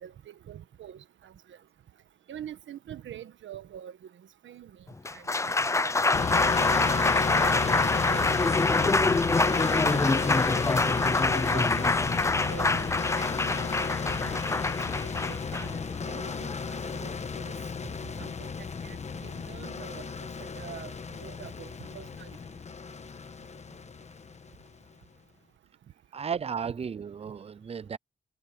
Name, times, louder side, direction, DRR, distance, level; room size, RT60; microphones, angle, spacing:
voice 1, 0.0-1.6 2.3-4.0 4.4-4.7 5.1-6.0 6.6-7.0 7.5-8.5 8.8-9.0 9.5-9.6 9.9-10.1 10.5-10.7 11.0-11.9 12.3-12.9 13.2-13.5 14.2-14.4 15.0-15.8 16.1-17.5 18.2-20.1 20.4-22.3 26.6-26.7, right 10 dB, 80° right, 1.4 m, -45 dB
Applause, 4.9-17.1, left 3 dB, 15° left, 0.5 m, -26 dB
sound 1, 6.1-24.8, left 5 dB, 35° left, 1.2 m, -33 dB
voice 2, 26.1-28.0, right 6 dB, 30° right, 0.5 m, -34 dB
wide cardioid pair, 130°, 19 cm